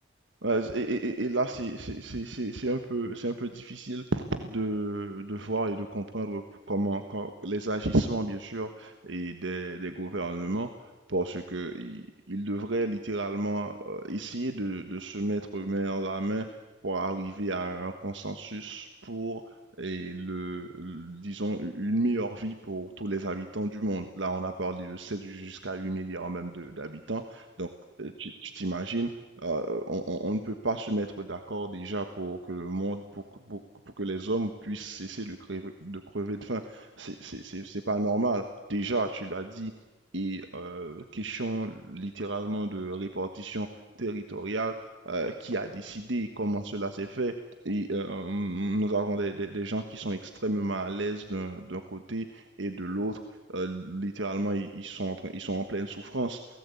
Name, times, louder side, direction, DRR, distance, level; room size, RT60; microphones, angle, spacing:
voice 1, 0.4-6.4 6.7-10.7 11.1-16.4 16.8-19.4 19.8-27.7 28.0-29.1 29.4-33.6 34.0-38.4 38.7-39.7 40.1-43.7 44.0-47.3 47.6-53.2 53.5-56.4, right 2 dB, 80° right, 7 dB, 1.5 m, -32 dB
28.5 x 18.5 x 8.5 m, 1.2 s
head